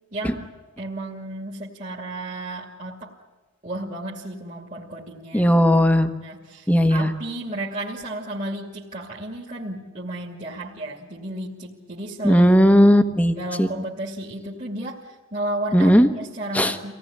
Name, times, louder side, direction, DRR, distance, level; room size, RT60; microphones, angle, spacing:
voice 1, 0.1-0.5 0.8-3.1 3.6-5.5 6.2-12.5 13.3-16.9, right 1 dB, 35° right, -3 dB, 2.5 m, -33 dB
voice 2, 5.3-6.1 6.7-7.1 12.2-13.7 15.7-16.1 16.5-16.8, equal, 5° left, 8 dB, 1.3 m, -16 dB
26.0 x 17.5 x 9.9 m, 1.3 s
head